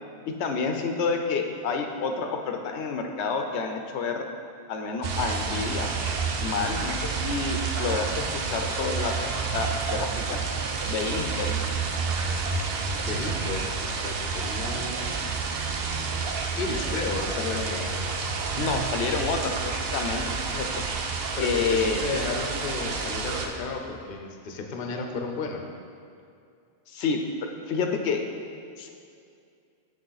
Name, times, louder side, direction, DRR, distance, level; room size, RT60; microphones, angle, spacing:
voice 1, 0.3-4.2 4.7-5.9 6.4-10.4 10.8-11.6 16.9-17.0 18.6-20.8 21.4-22.0 26.9-27.2 27.7-28.2 28.8-28.9, left 5 dB, 90° left, 4 dB, 0.9 m, -29 dB
sound 1, 5.0-23.5, right 4 dB, 65° right, 0.8 m, -29 dB
voice 2, 13.1-13.7 14.0-15.4 16.6-18.0 21.4-25.7, left 4 dB, 55° left, 3 dB, 0.8 m, -33 dB
6.5 x 6.4 x 3.9 m, 2.4 s
omnidirectional pair, 1.1 m